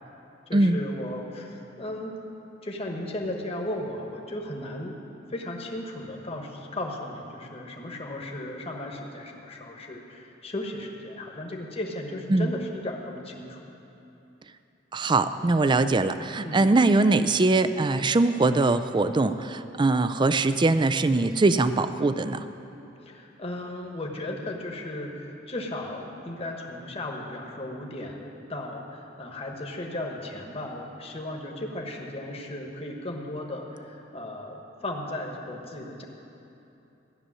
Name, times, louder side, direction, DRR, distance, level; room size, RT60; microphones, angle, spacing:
voice 1, 0.5-2.1 2.6-4.9 5.3-13.6 15.6-15.9 16.4-16.6 23.0-36.0, left 1 dB, 30° left, 1 dB, 1.3 m, -36 dB
voice 2, 14.9-22.5, right 2 dB, 25° right, 12 dB, 0.4 m, -22 dB
14.0 x 6.8 x 9.7 m, 3.0 s
head